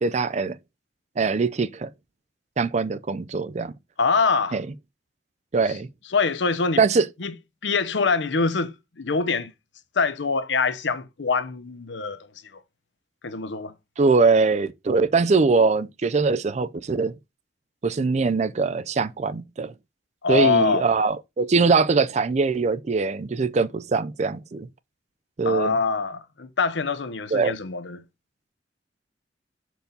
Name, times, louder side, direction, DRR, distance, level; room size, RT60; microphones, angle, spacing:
voice 1, 0.0-0.6 1.2-1.9 2.6-3.7 4.5-4.7 5.5-5.9 6.8-7.1 14.0-17.1 17.8-19.7 20.3-24.7 25.4-25.8 27.3-27.6, right 4 dB, 40° right, 0.4 m, -22 dB
voice 2, 4.0-4.6 5.7-5.8 6.1-6.8 7.2-7.3 7.6-9.5 9.9-12.3 13.2-13.7 20.2-20.8 25.4-28.0, left 4 dB, 90° left, 0.8 m, -24 dB
6.9 x 4.6 x 3.9 m
head